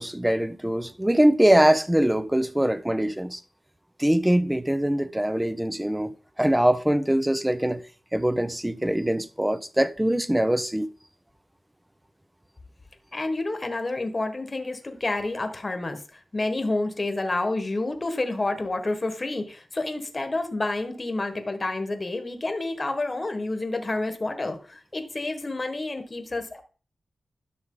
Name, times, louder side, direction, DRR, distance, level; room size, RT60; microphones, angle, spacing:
voice 1, 0.0-3.4 4.0-7.8 8.1-10.9, right 1 dB, 10° right, 0.8 m, -23 dB
voice 2, 13.1-26.6, left 2 dB, 35° left, 1.4 m, -29 dB
11.0 x 6.3 x 3.8 m
cardioid pair, 70°, 0 cm